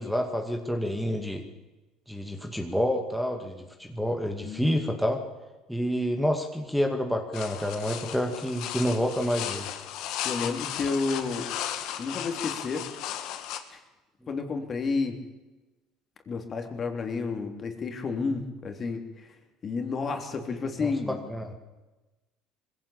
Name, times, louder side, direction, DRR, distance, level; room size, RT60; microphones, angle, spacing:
voice 1, 0.0-1.4 2.1-5.2 5.7-9.7 20.8-20.9 21.3-21.5, equal, ahead, 4 dB, 2.2 m, -28 dB
sound 1, 7.3-13.6, left 11 dB, 70° left, 2.0 m, -35 dB
voice 2, 10.2-11.5 12.0-12.8 13.7-13.8 14.3-15.2 16.2-19.4 19.6-21.2, left 4 dB, 35° left, 5 dB, 3.3 m, -31 dB
21.0 x 16.5 x 8.6 m, 1.1 s
supercardioid pair, 95°, 0 cm